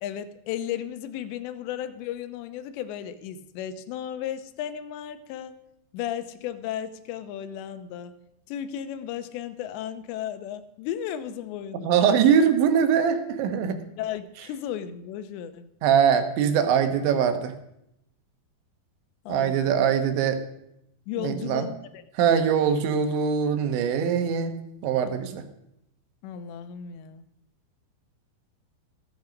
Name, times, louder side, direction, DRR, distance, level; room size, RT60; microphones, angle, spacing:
voice 1, 0.0-5.5 5.9-8.1 8.5-11.9 14.0-15.7 19.3-19.7 21.1-22.0 26.2-27.3, left 10 dB, 85° left, 12 dB, 3.0 m, -34 dB
voice 2, 11.7-13.8 15.8-17.5 19.3-20.4 21.2-21.7 22.2-24.6 24.8-25.4, right 7 dB, 90° right, 7 dB, 3.6 m, -22 dB
14.5 x 12.0 x 5.2 m, 0.81 s
omnidirectional pair, 5.1 m